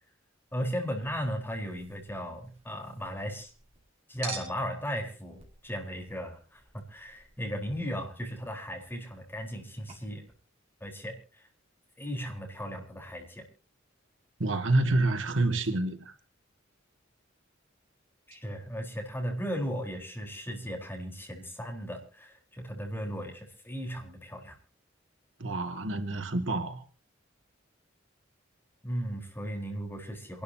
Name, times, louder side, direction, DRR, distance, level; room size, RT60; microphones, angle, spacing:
voice 1, 0.5-3.5 4.1-10.2 10.8-11.5 12.0-13.5 18.3-24.6 28.8-30.4, equal, 10° left, 4.2 m, -36 dB
Chink clink, 0.8-3.8 4.2-9.6 9.9-10.0, right 4 dB, 35° right, 4.9 m, -48 dB
voice 2, 14.4-16.1 25.4-26.8, right 2 dB, 80° right, 2.1 m, -28 dB
27.5 x 12.0 x 2.8 m
head